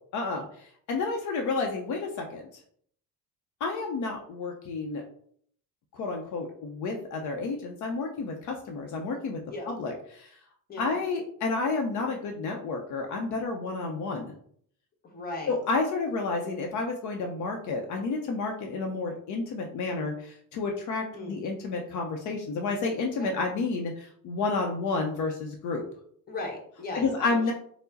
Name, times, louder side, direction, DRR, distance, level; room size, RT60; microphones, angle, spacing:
voice 1, 0.1-2.5 3.6-5.0 5.9-9.4 9.7-10.3 10.8-14.3 15.5-25.8 26.9-27.5, left 3 dB, 60° left, 2 dB, 0.6 m, -30 dB
voice 2, 15.0-15.6 21.1-21.4 23.2-23.3 26.3-27.5, left 2 dB, 30° left, 1 dB, 1.0 m, -37 dB
4.5 x 2.0 x 3.9 m, 0.62 s
cardioid pair, 160°, 33 cm